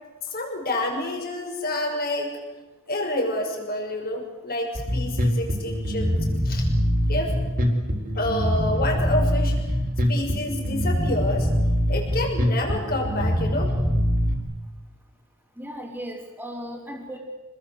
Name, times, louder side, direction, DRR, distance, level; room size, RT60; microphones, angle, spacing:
voice 1, 0.3-2.4 2.9-6.7 7.1-7.4 8.1-9.6 10.1-11.5 11.9-13.7, left 1 dB, 45° left, 2 dB, 6.3 m, -28 dB
Bass guitar, 4.7-14.3, equal, 45° right, 4.2 m, -23 dB
voice 2, 15.6-17.2, equal, 5° right, -6 dB, 3.9 m, -36 dB
27.0 x 20.5 x 8.1 m, 1.2 s
head